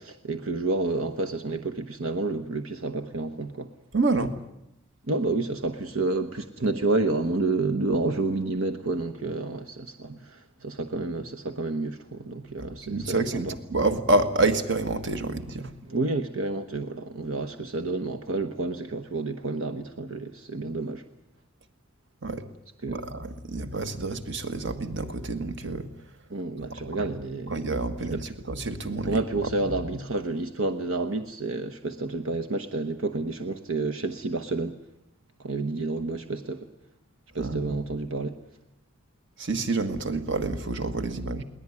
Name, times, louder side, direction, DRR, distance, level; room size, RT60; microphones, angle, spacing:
voice 1, 0.0-3.7 5.1-13.5 15.9-21.0 22.8-23.0 26.3-27.6 28.1-28.2 29.1-34.8 35.4-36.7 37.3-38.4, right 3 dB, 80° right, 8 dB, 1.1 m, -29 dB
voice 2, 3.9-4.3 12.6-15.7 22.2-22.4 22.9-25.9 26.6-27.1 27.5-29.2 29.6-29.7 37.4-37.8 39.4-41.4, right 2 dB, 55° right, 8 dB, 1.6 m, -28 dB
22.0 x 18.5 x 9.7 m, 0.86 s
head